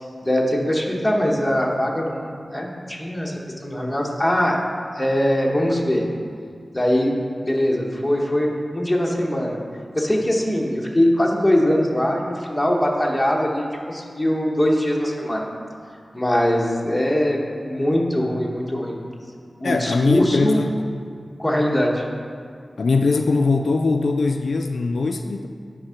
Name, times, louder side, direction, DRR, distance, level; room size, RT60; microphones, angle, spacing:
voice 1, 0.2-3.3 3.6-4.6 4.9-6.1 6.7-7.1 7.4-9.6 9.9-15.5 16.1-19.0 19.6-20.6 21.4-22.0, equal, 10° left, -2 dB, 1.1 m, -21 dB
voice 2, 19.6-20.7 22.8-25.5, left 3 dB, 80° left, 6 dB, 0.3 m, -21 dB
9.9 x 3.6 x 5.7 m, 2.2 s
wide cardioid pair, 80°, 0 cm